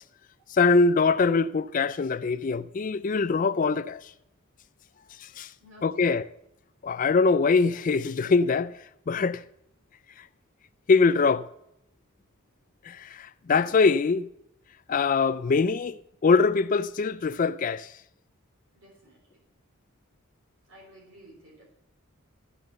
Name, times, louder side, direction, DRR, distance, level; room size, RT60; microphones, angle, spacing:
voice 1, 0.5-4.1 5.2-5.5 5.8-6.2 6.8-8.7 9.1-9.4 10.2-10.3 10.9-11.5 12.8-14.3 14.9-17.9, left 4 dB, 35° left, 0.4 m, -23 dB
voice 2, 5.6-6.2 18.7-19.4 20.7-21.7, equal, 60° right, 3.5 m, -53 dB
14.0 x 5.9 x 7.7 m
head